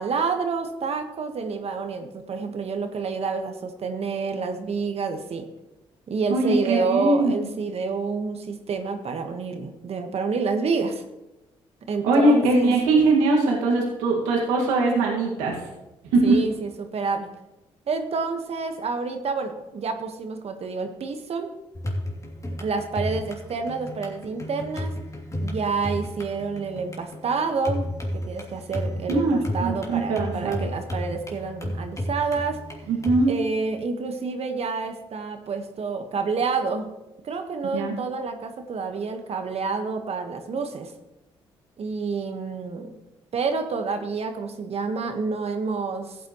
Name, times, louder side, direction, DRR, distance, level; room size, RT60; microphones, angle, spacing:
voice 1, 0.0-5.5 6.1-11.0 11.9-12.7 16.2-17.3 17.9-21.5 22.6-24.9 25.4-32.6 33.3-36.9 37.2-40.9 41.8-42.9 43.3-46.2, right 4 dB, 60° right, 6 dB, 1.4 m, -28 dB
voice 2, 6.3-7.5 12.0-15.6 16.1-16.4 29.1-30.6 32.9-33.3 37.7-38.0, right 2 dB, 90° right, -1 dB, 1.9 m, -21 dB
sound 1, 21.7-33.2, left 1 dB, 25° left, 2.8 m, -33 dB
14.5 x 9.0 x 3.1 m, 0.98 s
supercardioid pair, 50°, 12 cm